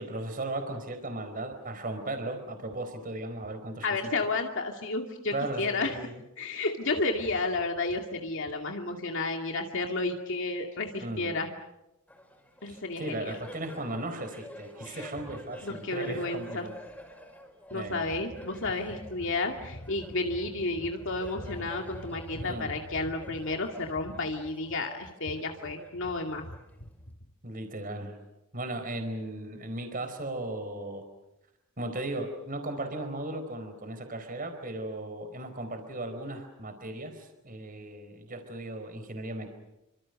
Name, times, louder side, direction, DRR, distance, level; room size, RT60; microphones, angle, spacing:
voice 1, 0.0-3.9 5.3-6.2 11.0-11.3 12.6-16.7 17.7-18.0 22.4-22.8 27.4-28.2 28.5-31.1 31.8-39.5, right 1 dB, 40° right, 8 dB, 4.5 m, -36 dB
voice 2, 3.8-6.0 6.4-11.5 12.6-13.4 14.8-15.1 15.6-16.7 17.7-26.6, left 3 dB, 60° left, 3 dB, 2.3 m, -32 dB
Laughter, 12.1-27.1, left 1 dB, 5° left, 5.3 m, -50 dB
29.0 x 26.0 x 6.6 m, 0.91 s
head